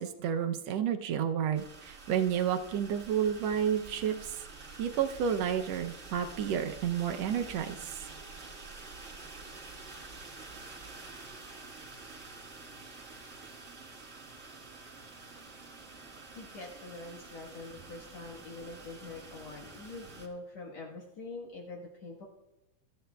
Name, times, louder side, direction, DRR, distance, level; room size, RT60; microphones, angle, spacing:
voice 1, 0.0-4.1 4.8-7.8, right 8 dB, 75° right, 6 dB, 1.7 m, -30 dB
sound 1, 1.5-20.3, right 3 dB, 30° right, 1.5 m, -48 dB
voice 2, 3.9-4.2 16.3-22.3, left 3 dB, 65° left, -3 dB, 2.6 m, -45 dB
24.5 x 14.0 x 2.3 m, 0.98 s
omnidirectional pair, 3.3 m